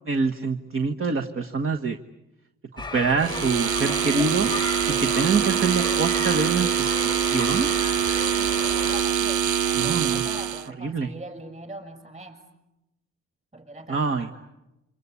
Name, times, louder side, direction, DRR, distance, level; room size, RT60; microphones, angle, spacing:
voice 1, 0.1-2.0 2.7-4.5 4.9-7.7 9.7-10.2 10.8-11.1 13.9-14.3, right 4 dB, 45° right, 4 dB, 1.4 m, -25 dB
sound 1, 2.8-9.0, left 3 dB, 15° left, 1.0 m, -34 dB
sound 2, 3.2-10.7, right 9 dB, 85° right, 1.0 m, -24 dB
voice 2, 8.2-12.4 13.5-14.3, right 1 dB, 25° right, 6 dB, 6.5 m, -41 dB
28.0 x 25.5 x 8.4 m, 0.96 s
cardioid pair, 105°, 30 cm